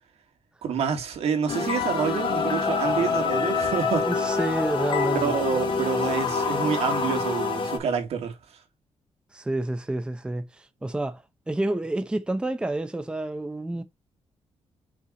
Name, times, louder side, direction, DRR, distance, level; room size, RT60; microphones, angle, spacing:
voice 1, 0.6-4.1 5.2-8.3, right 7 dB, 75° right, 2.4 m, -27 dB
sound 1, 1.5-7.8, left 4 dB, 50° left, 2.4 m, -26 dB
voice 2, 4.1-5.4 9.3-13.8, right 2 dB, 10° right, 0.7 m, -29 dB
5.7 x 4.7 x 3.8 m
cardioid pair, 135°, 10 cm